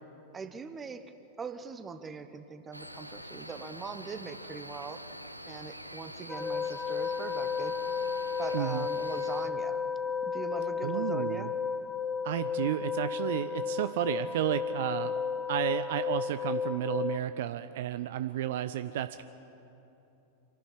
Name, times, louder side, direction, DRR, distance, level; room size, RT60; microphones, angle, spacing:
voice 1, 0.3-1.1 1.4-5.0 5.5-7.7 8.4-9.8 10.3-11.5, right 5 dB, 20° right, 10 dB, 1.2 m, -41 dB
Cricket, 2.7-9.5, equal, 90° right, 0.8 m, -45 dB
sound 1, 6.3-17.2, left 6 dB, 10° left, 0.5 m, -33 dB
voice 2, 8.5-8.9 10.8-11.5 12.2-15.2 15.5-19.2, right 12 dB, 55° right, 11 dB, 0.6 m, -32 dB
26.5 x 11.5 x 9.9 m, 2.9 s
figure-of-eight pair, 90°, 0 cm